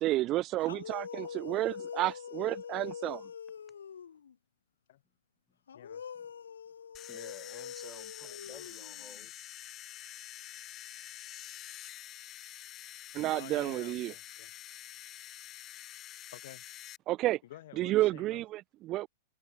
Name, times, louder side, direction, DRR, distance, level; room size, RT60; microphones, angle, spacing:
voice 1, 0.0-3.3 13.1-14.1 17.1-17.4 17.8-19.1, right 16 dB, 40° right, 0.3 m, -31 dB
sound 1, 0.6-4.3 5.7-9.3, left 7 dB, 85° left, 0.3 m, -44 dB
sound 2, 6.9-17.0, left 13 dB, 35° left, 1.1 m, -47 dB
voice 2, 7.1-9.3, left 3 dB, 10° left, 4.6 m, -53 dB
voice 3, 8.2-8.6 13.3-14.5 16.3-16.6 17.4-18.4, left 14 dB, 65° left, 5.0 m, -50 dB
open air
hypercardioid pair, 110°, 0 cm